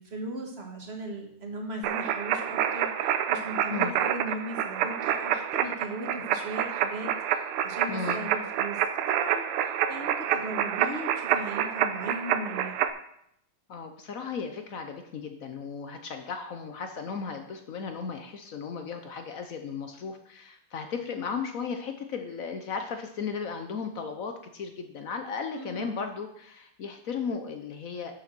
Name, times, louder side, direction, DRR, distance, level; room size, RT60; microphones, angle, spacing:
voice 1, 0.0-8.8 9.1-12.8 25.6-26.0, right 1 dB, 35° right, 1 dB, 1.5 m, -38 dB
sound 1, 1.8-12.9, right 10 dB, 90° right, 1.5 m, -28 dB
voice 2, 7.9-8.2 13.7-28.1, left 5 dB, 65° left, 6 dB, 0.8 m, -35 dB
7.1 x 6.5 x 6.1 m, 0.72 s
omnidirectional pair, 2.3 m